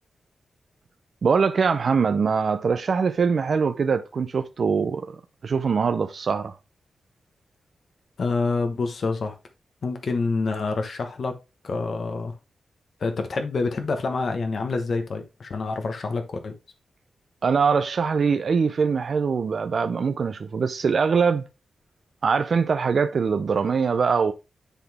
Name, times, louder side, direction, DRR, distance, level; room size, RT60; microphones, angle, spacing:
voice 1, 1.2-5.2 5.4-6.6 17.4-21.4 22.2-24.3, right 5 dB, 50° right, 0.5 m, -22 dB
voice 2, 8.2-9.4 9.8-11.4 11.6-12.3 13.0-16.5, left 3 dB, 50° left, 1.0 m, -27 dB
10.0 x 3.9 x 3.5 m
wide cardioid pair, 150°, 0 cm